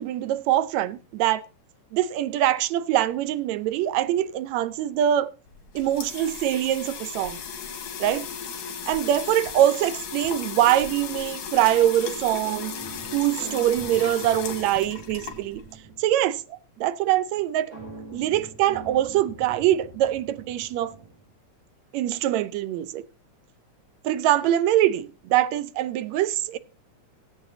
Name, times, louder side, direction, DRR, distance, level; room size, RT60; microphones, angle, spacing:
voice 1, 0.0-1.4 1.9-5.3 5.8-7.4 8.0-8.3 8.9-12.7 13.1-15.6 16.0-17.7 18.1-20.9 21.9-23.0 24.0-26.6, right 12 dB, 75° right, 1.9 m, -23 dB
sound 1, 5.5-15.8, left 6 dB, 80° left, 3.4 m, -36 dB
sound 2, 12.4-16.2 17.7-21.3, right 5 dB, 50° right, 6.5 m, -43 dB
19.5 x 7.9 x 2.7 m
omnidirectional pair, 3.5 m